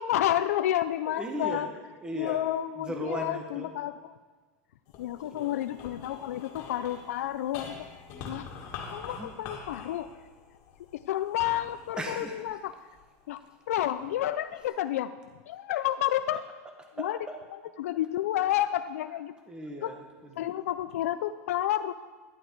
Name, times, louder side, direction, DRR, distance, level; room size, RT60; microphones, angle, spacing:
voice 1, 0.0-1.7 2.1-4.2 5.0-7.9 8.2-8.5 8.9-10.1 10.9-12.7 13.3-13.4 13.7-15.1 15.5-16.4 17.0-17.2 17.8-19.3 19.8-19.9 20.4-21.9, left 12 dB, 90° left, 11 dB, 0.5 m, -30 dB
voice 2, 1.0-1.7 2.0-2.4 2.7-3.7 5.2-5.7 9.1-9.3 12.0-12.6 15.7-15.8 16.3-17.4 19.0-19.2 19.4-20.5, right 1 dB, 10° right, 3 dB, 1.5 m, -39 dB
sound 1, 4.9-13.3 13.9-14.7, left 5 dB, 50° left, 2.2 m, -45 dB
11.5 x 11.5 x 4.6 m, 1.4 s
supercardioid pair, 145°, 8 cm